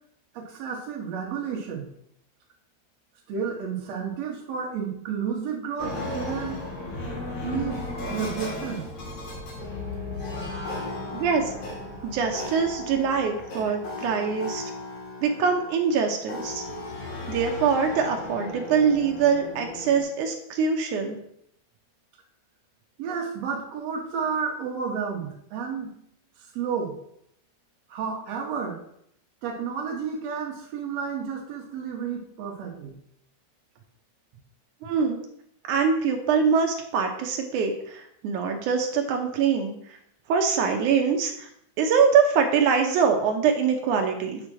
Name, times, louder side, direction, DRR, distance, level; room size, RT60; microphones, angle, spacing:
voice 1, 0.3-1.9 3.3-6.6 7.4-7.8 8.1-8.8 23.0-25.9 26.6-26.9 27.9-28.8 29.4-33.0, right 6 dB, 60° right, 0 dB, 2.1 m, -31 dB
sound 1, 5.8-20.0, left 2 dB, 85° left, 4.2 m, -35 dB
voice 2, 11.1-11.5 12.0-14.6 15.2-16.6 17.3-21.2 34.8-35.2 35.7-40.0 40.3-41.5 41.8-44.4, right 6 dB, 75° right, 3 dB, 2.0 m, -23 dB
7.6 x 3.6 x 6.2 m, 0.73 s
omnidirectional pair, 4.1 m